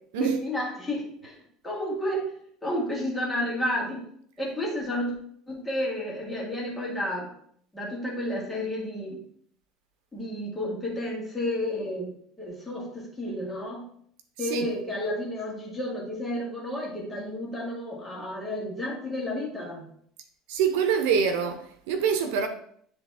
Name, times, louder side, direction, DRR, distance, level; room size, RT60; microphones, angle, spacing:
voice 1, 0.2-1.4 1.6-2.3 2.6-4.0 4.4-5.1 5.5-7.3 7.7-9.2 10.1-13.9 14.4-19.9, left 1 dB, 10° left, 1.9 m, -31 dB
voice 2, 20.5-22.5, right 7 dB, 85° right, 0.8 m, -25 dB
10.0 x 3.4 x 3.5 m
cardioid pair, 165°, 0 cm